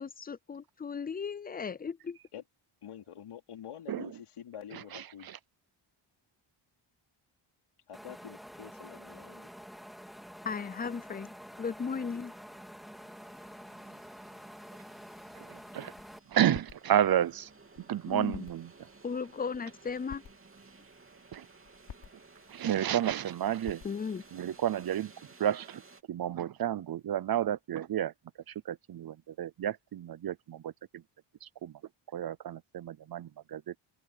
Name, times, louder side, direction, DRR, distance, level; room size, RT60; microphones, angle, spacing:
voice 1, 0.0-2.2 10.4-11.3 11.6-12.3 18.1-18.5 19.0-20.2 23.8-24.2, left 5 dB, 20° left, 0.3 m, -36 dB
voice 2, 2.8-5.3 7.9-9.5, left 9 dB, 90° left, 4.1 m, -47 dB
sound 1, 7.9-16.2, equal, ahead, 2.2 m, -48 dB
sound 2, 10.6-26.0, right 4 dB, 25° right, 3.0 m, -58 dB
sound 3, 15.1-24.9, left 7 dB, 60° left, 4.6 m, -55 dB
voice 3, 15.5-15.9 16.3-17.5 17.9-18.7 21.3-21.4 22.5-23.8 24.3-25.1 25.4-25.8 26.1-28.1 28.7-31.0 31.4-31.7 32.1-33.7, right 10 dB, 45° right, 0.6 m, -31 dB
wide cardioid pair, 160°, 50 cm